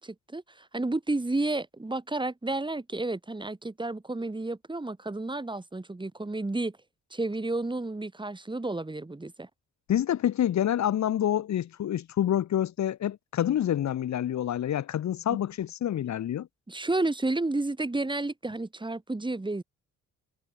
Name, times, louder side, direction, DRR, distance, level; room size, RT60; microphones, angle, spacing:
voice 1, 0.0-6.8 7.1-9.5 15.3-15.4 16.7-19.6, right 2 dB, 15° right, 7.0 m, -31 dB
voice 2, 9.9-16.5, left 11 dB, 65° left, 2.4 m, -27 dB
cardioid pair, 90°, 30 cm